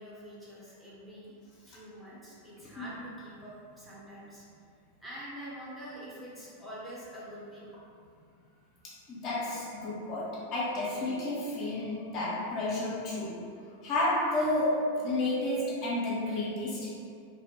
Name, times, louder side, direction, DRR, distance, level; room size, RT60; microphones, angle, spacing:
voice 1, 0.0-1.4 1.7-4.4 5.0-7.7, equal, 5° right, -9 dB, 0.7 m, -45 dB
voice 2, 8.8-13.5 13.8-16.9, left 1 dB, 35° left, -7 dB, 0.5 m, -31 dB
2.6 x 2.0 x 2.7 m, 2.3 s
figure-of-eight pair, 90°, 0 cm